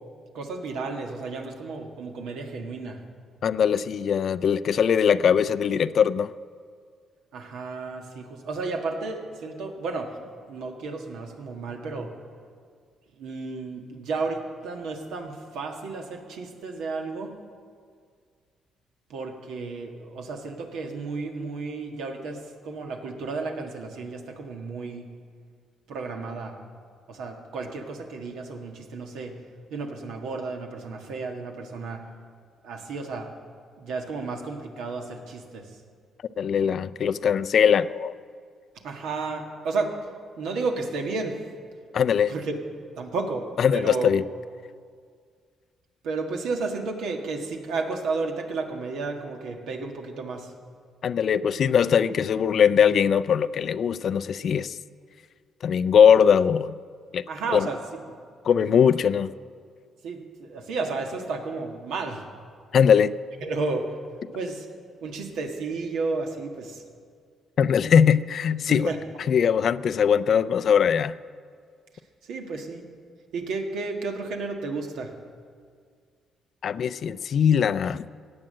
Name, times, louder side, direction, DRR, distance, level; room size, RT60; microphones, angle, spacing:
voice 1, 0.3-3.0 7.3-10.1 10.5-12.1 13.2-17.3 19.1-25.1 25.9-26.5 27.1-29.3 29.7-32.0 32.6-33.3 33.8-35.7 38.8-39.9 40.4-41.4 42.3-42.6 43.0-43.4 43.7-44.1 46.0-50.5 57.3-57.8 58.6-58.9 60.0-62.2 63.4-63.8 64.3-64.7 65.0-66.8 68.6-69.0 72.3-72.8 73.3-75.1, right 3 dB, 85° right, 3 dB, 1.7 m, -32 dB
voice 2, 3.4-6.3 36.4-38.1 41.9-42.3 43.6-44.2 51.0-54.8 55.6-56.8 57.1-57.2 57.5-57.7 58.4-59.3 62.7-63.1 67.6-68.9 69.3-71.1 76.6-78.0, left 7 dB, 60° left, 16 dB, 0.4 m, -21 dB
16.5 x 8.8 x 7.6 m, 2.1 s
cardioid pair, 90°, 0 cm